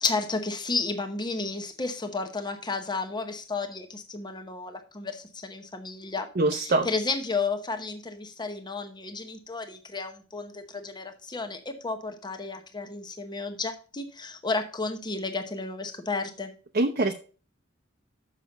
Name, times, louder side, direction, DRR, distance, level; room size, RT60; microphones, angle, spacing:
voice 1, 0.0-16.5, left 3 dB, 20° left, 7 dB, 1.0 m, -32 dB
voice 2, 6.4-6.9 16.7-17.1, right 2 dB, 45° right, 3 dB, 0.7 m, -23 dB
7.0 x 5.9 x 5.3 m, 0.37 s
head